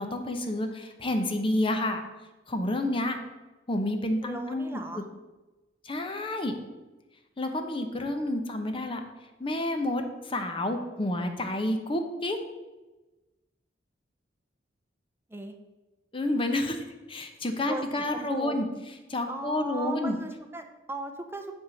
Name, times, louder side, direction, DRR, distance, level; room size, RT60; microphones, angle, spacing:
voice 1, 0.0-2.0 2.5-3.2 3.7-5.0 5.8-6.5 7.4-9.0 9.4-12.4 16.1-18.7 19.1-20.2, left 1 dB, 30° left, 5 dB, 0.8 m, -29 dB
voice 2, 4.2-5.0 15.3-15.5 17.7-18.6 19.3-21.5, right 2 dB, 15° right, 5 dB, 0.7 m, -37 dB
8.5 x 3.7 x 6.8 m, 1.1 s
head